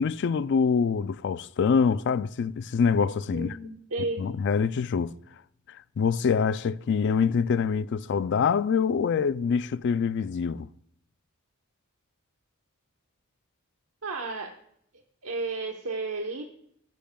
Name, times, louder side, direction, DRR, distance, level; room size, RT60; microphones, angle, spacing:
voice 1, 0.0-3.6 4.2-5.1 6.0-10.7, left 6 dB, 55° left, 0.3 m, -25 dB
voice 2, 3.3-4.2 14.0-14.5 15.2-16.4, right 3 dB, 80° right, 1.0 m, -32 dB
13.5 x 10.0 x 2.3 m
head